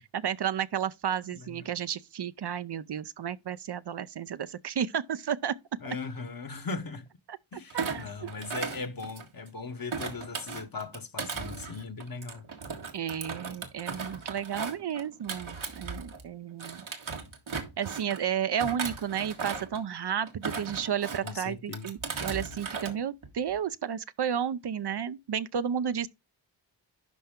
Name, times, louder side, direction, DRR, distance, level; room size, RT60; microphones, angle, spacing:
voice 1, 0.0-5.6 7.3-8.3 12.9-16.8 17.8-26.1, right 8 dB, 60° right, 0.6 m, -32 dB
voice 2, 1.4-1.7 5.8-7.1 7.5-12.5 21.2-21.9, left 4 dB, 45° left, 1.1 m, -38 dB
Thump thud, 7.7-9.5 9.9-16.3 16.6-18.2 18.6-19.8 20.3-21.3 21.7-22.9 23.2-23.6, right 5 dB, 80° right, 1.8 m, -37 dB
11.5 x 4.3 x 3.6 m
cardioid pair, 40°, 47 cm